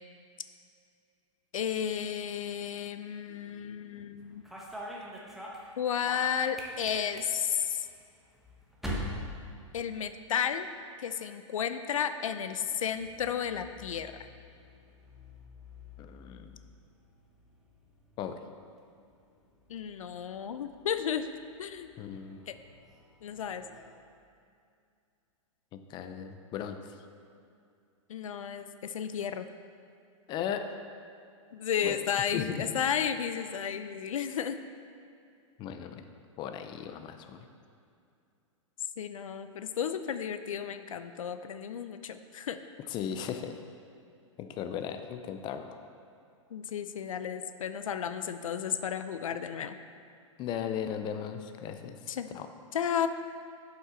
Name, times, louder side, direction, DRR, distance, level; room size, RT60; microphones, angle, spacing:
voice 1, 1.5-4.4 5.8-7.9 9.7-10.7 11.0-14.1 19.7-21.3 21.6-21.9 22.5-22.6 23.2-23.6 28.1-29.5 31.5-34.6 39.0-42.6 46.5-49.8 52.1-52.3 52.7-53.1, left 8 dB, 80° left, 10 dB, 0.4 m, -33 dB
sound 1, 4.2-10.4 10.6-11.2 12.3-23.9, equal, ahead, 1.1 m, -46 dB
voice 2, 16.0-16.6 18.2-18.4 22.0-22.4 25.7-27.0 30.3-30.7 31.8-32.0 32.3-32.7 35.6-36.0 36.4-37.5 42.9-43.6 44.4-45.8 50.4-52.0 52.3-52.5, left 8 dB, 25° left, 8 dB, 0.5 m, -37 dB
7.8 x 5.7 x 4.4 m, 2.4 s
hypercardioid pair, 120°, 17 cm